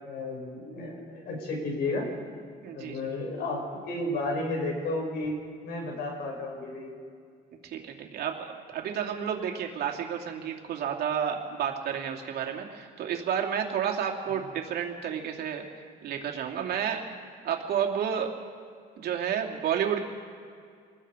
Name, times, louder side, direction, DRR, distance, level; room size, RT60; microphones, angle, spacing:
voice 1, 0.0-2.1 2.7-5.3 5.6-7.0, left 2 dB, 70° left, 1 dB, 6.5 m, -32 dB
voice 2, 2.6-3.0 7.6-15.6 16.0-17.0 17.4-18.3 19.0-20.0, right 8 dB, 70° right, 1 dB, 2.8 m, -31 dB
27.5 x 20.0 x 5.1 m, 2.2 s
cardioid pair, 110°, 17 cm